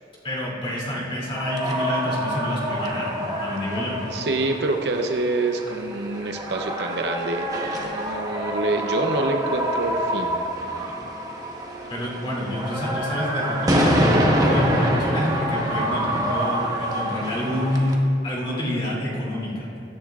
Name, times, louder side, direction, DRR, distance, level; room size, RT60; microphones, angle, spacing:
voice 1, 0.2-4.0 11.9-19.7, left 1 dB, 30° left, -5 dB, 2.8 m, -28 dB
sound 1, 1.4-17.9, equal, 20° right, 1.1 m, -26 dB
voice 2, 4.1-10.4, right 2 dB, 65° right, 4 dB, 0.7 m, -26 dB
17.5 x 13.0 x 2.4 m, 2.6 s
head